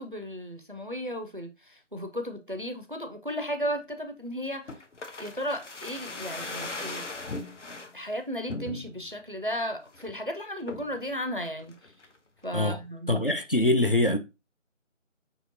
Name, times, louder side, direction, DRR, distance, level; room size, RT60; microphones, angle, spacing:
voice 1, 0.0-4.7 5.2-7.1 7.9-11.7 12.4-13.1, equal, 45° right, 0.5 m, -34 dB
sound 1, 4.7-7.9 8.5-9.1 9.5-9.6 9.9-10.2 10.7-11.0 11.5-12.2 12.4-12.5, left 3 dB, 65° left, 0.9 m, -39 dB
voice 2, 13.1-14.2, left 1 dB, 45° left, 0.6 m, -23 dB
6.1 x 2.9 x 2.6 m
figure-of-eight pair, 170°, 38 cm